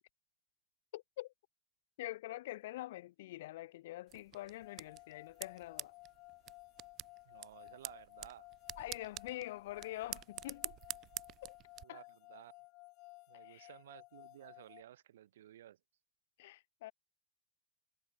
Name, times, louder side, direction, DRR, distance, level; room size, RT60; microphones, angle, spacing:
voice 1, 0.9-1.3 2.0-5.9 8.8-10.8 11.4-11.6 11.9-12.0 13.4-13.7 16.4-16.9, left 16 dB, 75° left, 0.8 m, -45 dB
sound 1, 4.1-11.8, right 14 dB, 45° right, 0.4 m, -48 dB
sound 2, 4.6-14.8, left 24 dB, 55° left, 2.5 m, -57 dB
voice 2, 7.2-8.5 11.8-12.5 13.3-15.8, right 12 dB, 80° right, 0.8 m, -56 dB
hypercardioid pair, 90°, 0 cm